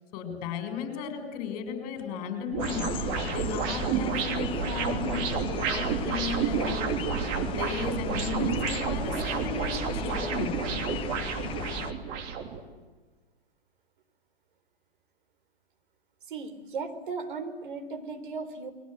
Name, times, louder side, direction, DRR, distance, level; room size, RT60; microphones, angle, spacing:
voice 1, 0.1-10.6, left 7 dB, 30° left, 6 dB, 7.0 m, -35 dB
sound 1, 2.5-12.6, right 7 dB, 30° right, 3.2 m, -30 dB
sound 2, 2.6-11.9, left 5 dB, 15° left, 1.3 m, -36 dB
voice 2, 16.3-18.7, right 4 dB, 55° right, 7 dB, 4.2 m, -36 dB
30.0 x 23.0 x 8.3 m, 1.4 s
figure-of-eight pair, 115°, 31 cm